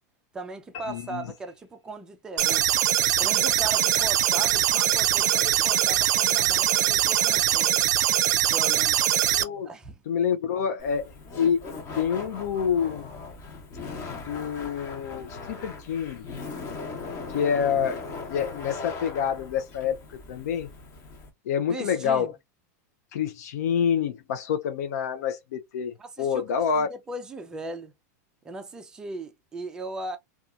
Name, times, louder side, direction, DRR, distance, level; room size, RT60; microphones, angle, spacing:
voice 1, 0.3-2.7 3.2-7.7 8.5-9.0 9.6-10.0 21.7-22.3 26.0-26.4 26.7-27.9 28.4-30.2, right 2 dB, 10° right, 0.3 m, -38 dB
sound 1, 0.7-2.3, left 7 dB, 50° left, 1.0 m, -47 dB
voice 2, 0.9-1.3 9.4-9.7 10.1-11.6 12.0-13.1 14.1-16.3 17.3-18.0 18.3-20.0 20.3-20.7 21.5-22.3 23.1-26.9, left 7 dB, 70° left, 0.5 m, -27 dB
sound 2, 2.4-9.4, right 11 dB, 85° right, 0.4 m, -22 dB
Laughter, 10.8-21.3, left 3 dB, 25° left, 0.8 m, -39 dB
2.6 x 2.3 x 2.4 m
supercardioid pair, 170°, 9 cm